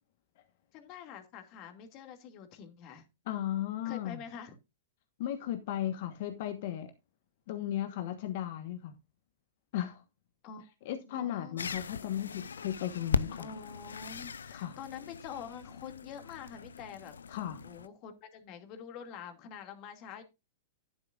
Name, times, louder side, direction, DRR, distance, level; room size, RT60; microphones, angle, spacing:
voice 1, 0.7-3.1 3.8-4.5 10.4-11.6 13.4-17.4 17.6-20.2, left 7 dB, 45° left, 2.4 m, -46 dB
voice 2, 3.3-4.2 5.2-6.9 7.5-8.9 9.7-10.0 10.8-13.5 14.5-14.8 17.3-17.6, left 11 dB, 60° left, 1.3 m, -35 dB
sound 1, 11.6-17.9, left 6 dB, 85° left, 0.6 m, -38 dB
11.5 x 9.7 x 2.5 m
hypercardioid pair, 115°, 0 cm